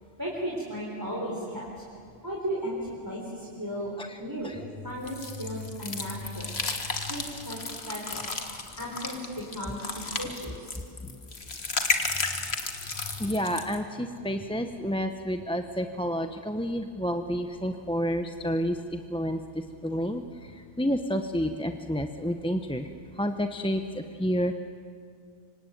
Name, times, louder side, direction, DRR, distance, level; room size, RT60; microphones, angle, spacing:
voice 1, 0.2-1.8 2.2-3.9 4.2-6.5 7.0-7.6 7.9-8.3 8.8-10.8 13.0-13.2, equal, 15° right, -4 dB, 4.0 m, -35 dB
sound 1, 5.1-13.8, left 3 dB, 65° left, 2.1 m, -33 dB
voice 2, 13.2-22.9 23.1-24.5, equal, 5° left, 6 dB, 0.8 m, -30 dB
26.0 x 25.0 x 9.2 m, 2.3 s
omnidirectional pair, 1.1 m